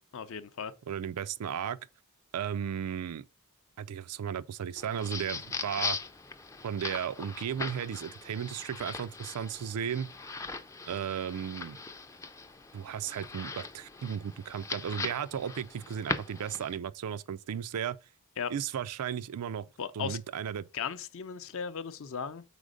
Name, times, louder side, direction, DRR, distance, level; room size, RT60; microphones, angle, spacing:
voice 1, 0.1-0.7 18.4-18.5 19.8-20.2 20.7-22.4, left 6 dB, 60° left, 0.5 m, -36 dB
voice 2, 0.9-1.8 2.3-3.3 3.8-6.0 6.6-10.1 10.9-11.8 12.7-18.0 18.5-19.7 19.9-20.7, right 8 dB, 90° right, 0.4 m, -35 dB
sound 1, 4.8-16.8, left 3 dB, 15° left, 0.4 m, -40 dB
5.0 x 4.2 x 5.1 m
head